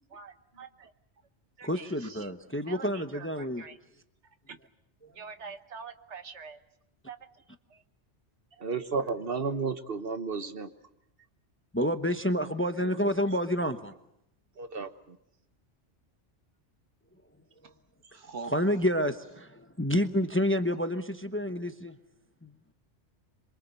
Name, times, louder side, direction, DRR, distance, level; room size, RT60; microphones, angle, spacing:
voice 1, 0.1-0.9 1.6-1.9 2.2-2.3 2.7-3.8 4.5-4.6 5.2-6.6 7.1-7.2 8.6-8.7 12.8-12.9 18.2-18.5, right 5 dB, 75° right, 9 dB, 1.5 m, -44 dB
voice 2, 1.6-3.6 11.7-13.9 18.4-22.0 22.4-22.5, equal, 10° left, 8 dB, 0.9 m, -29 dB
voice 3, 8.6-10.7 14.6-15.2, right 4 dB, 55° right, 9 dB, 1.4 m, -32 dB
27.0 x 23.5 x 6.9 m, 0.79 s
omnidirectional pair, 1.2 m